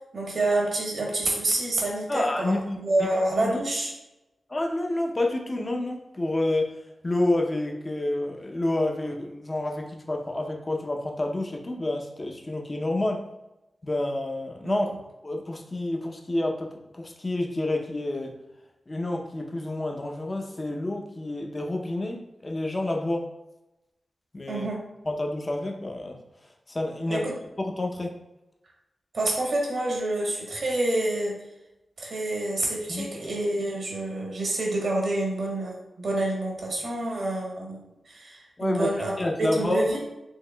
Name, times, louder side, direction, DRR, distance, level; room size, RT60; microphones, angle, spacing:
voice 1, 0.1-3.9 14.6-14.8 24.5-24.8 27.1-27.3 29.1-31.4 32.0-37.8 38.1-39.1 39.4-40.0, right 2 dB, 70° right, -2 dB, 1.1 m, -27 dB
voice 2, 2.1-2.8 3.1-3.6 4.5-6.7 7.0-13.2 13.8-14.9 15.2-18.4 18.9-23.3 24.3-24.7 25.1-26.2 26.7-27.2 27.6-28.2 32.9-33.1 38.6-40.0, left 1 dB, 30° left, 2 dB, 0.6 m, -29 dB
4.7 x 3.0 x 2.2 m, 0.95 s
cardioid pair, 60°, 0 cm